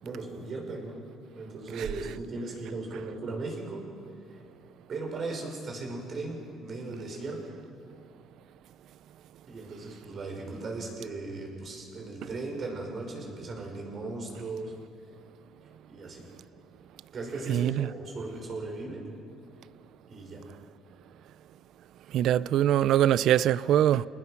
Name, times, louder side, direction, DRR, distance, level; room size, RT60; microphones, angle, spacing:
voice 1, 0.0-1.0 1.4-3.9 4.9-7.4 9.5-14.7 15.9-16.2 17.1-19.0 20.1-20.4, right 3 dB, 40° right, 6.1 m, -37 dB
voice 2, 17.5-17.9 22.1-24.1, right 11 dB, 65° right, 0.5 m, -23 dB
29.5 x 19.5 x 6.0 m
cardioid pair, 110°, 0 cm